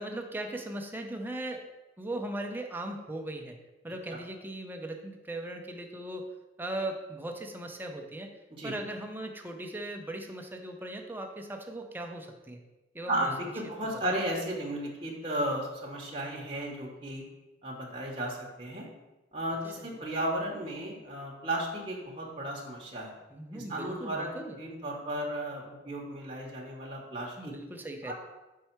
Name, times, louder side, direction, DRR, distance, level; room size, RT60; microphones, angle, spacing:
voice 1, 0.0-1.7 2.0-3.6 3.8-8.3 8.6-12.6 12.9-13.5 13.8-14.2 19.8-20.0 23.3-24.6 27.4-28.1, right 1 dB, 10° right, 3 dB, 0.6 m, -38 dB
voice 2, 13.1-17.2 17.6-18.9 19.3-23.1 23.5-24.3 24.6-27.5 28.0-28.1, right 1 dB, 30° right, -2 dB, 1.0 m, -34 dB
5.4 x 4.6 x 4.5 m, 1.1 s
head